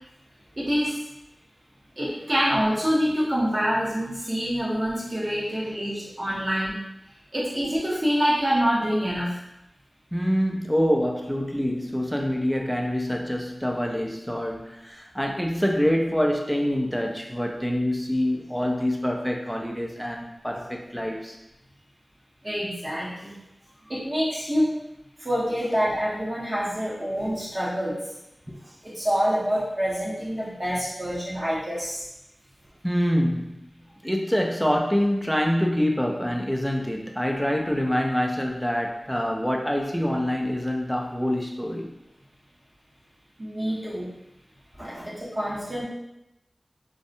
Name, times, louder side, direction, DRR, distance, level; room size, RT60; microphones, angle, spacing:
voice 1, 0.6-1.0 2.0-6.8 7.3-9.4 22.4-23.3 23.9-24.8 25.2-28.0 28.8-32.0 43.4-44.1 44.8-45.8, equal, 45° right, -7 dB, 0.8 m, -26 dB
voice 2, 10.1-21.4 28.5-28.6 32.8-33.6 34.0-41.9, equal, ahead, 1 dB, 0.4 m, -25 dB
2.6 x 2.1 x 2.5 m, 0.87 s
wide cardioid pair, 70°, 0 cm